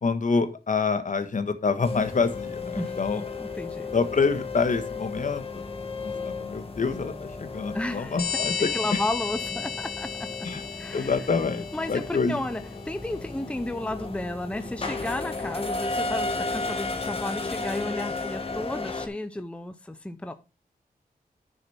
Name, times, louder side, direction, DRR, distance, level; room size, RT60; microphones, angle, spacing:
voice 1, 0.0-3.2 3.9-5.7 6.0-9.0 10.4-10.6 10.9-12.4, left 4 dB, 55° left, 1.4 m, -27 dB
sound 1, 1.8-19.1, left 3 dB, 40° left, 1.9 m, -34 dB
voice 2, 3.4-3.9 7.7-8.2 8.6-10.1 10.4-10.5 10.8-11.1 11.7-20.3, left 1 dB, 5° left, 0.7 m, -33 dB
sound 2, 8.2-12.5, left 6 dB, 80° left, 1.3 m, -33 dB
9.8 x 6.8 x 4.3 m
wide cardioid pair, 100°, 16 cm